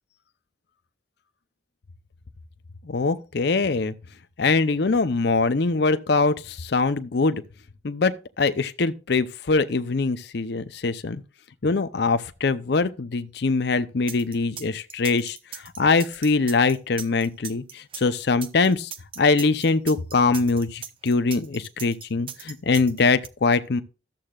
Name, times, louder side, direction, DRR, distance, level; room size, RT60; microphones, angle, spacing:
voice 1, 2.8-3.9 4.4-7.4 7.8-11.2 11.6-15.4 15.8-18.9 19.2-23.8, left 4 dB, 55° left, 0.6 m, -23 dB
sound 1, 14.1-23.3, right 8 dB, 25° right, 0.5 m, -38 dB
13.0 x 7.6 x 2.4 m
head